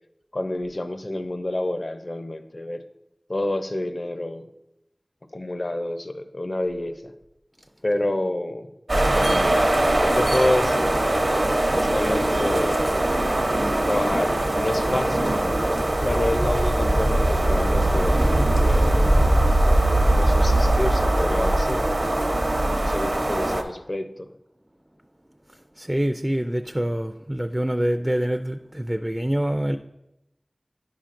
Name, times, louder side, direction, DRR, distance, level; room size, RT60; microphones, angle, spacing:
voice 1, 0.3-2.8 3.3-4.5 5.3-7.1 7.8-8.7 9.1-9.7 10.0-11.0 11.7-12.8 13.8-15.4 16.0-18.3 18.6-19.0 20.1-21.9 22.8-24.3, left 1 dB, 60° left, 8 dB, 0.6 m, -28 dB
sound 1, 8.9-23.6, right 1 dB, 65° right, 0.8 m, -21 dB
voice 2, 25.5-29.8, right 1 dB, 15° right, 7 dB, 0.3 m, -26 dB
10.0 x 5.7 x 2.5 m, 0.90 s
wide cardioid pair, 40°, 0 cm